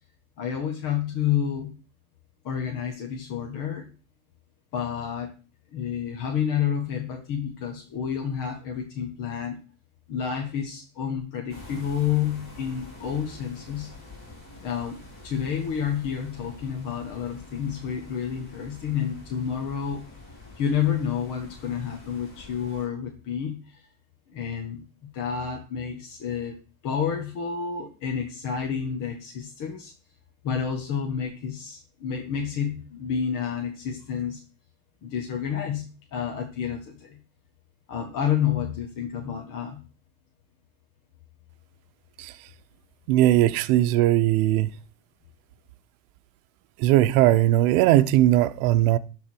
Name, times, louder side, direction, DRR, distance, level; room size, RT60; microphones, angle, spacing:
voice 1, 0.4-1.8 2.4-3.9 4.7-5.3 5.7-9.6 10.1-13.9 14.6-15.0 15.2-20.1 20.5-23.9 24.3-26.6 26.8-29.9 30.4-34.4 35.0-37.2 37.9-39.8, left 8 dB, 45° left, 1.6 m, -29 dB
sound 1, 11.5-22.9, left 2 dB, 30° left, 4.3 m, -46 dB
voice 2, 43.1-44.7 46.8-49.0, right 14 dB, 70° right, 0.8 m, -19 dB
12.0 x 4.0 x 4.5 m
supercardioid pair, 115°, 45 cm